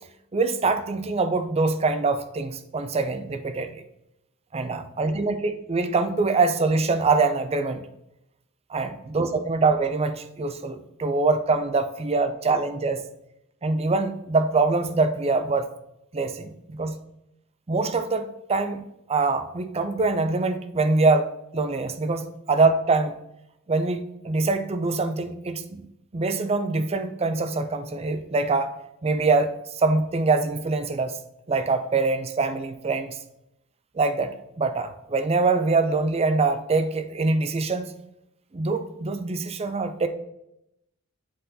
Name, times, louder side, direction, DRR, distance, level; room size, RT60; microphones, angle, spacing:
voice 1, 0.3-3.8 4.5-7.8 8.7-13.0 13.6-15.7 16.1-16.9 17.7-23.1 23.7-25.8 26.1-28.7 29.0-31.2 31.5-33.2 33.9-37.9 38.5-40.1, right 3 dB, 30° right, 9 dB, 0.5 m, -24 dB
7.8 x 4.1 x 3.9 m, 0.83 s
head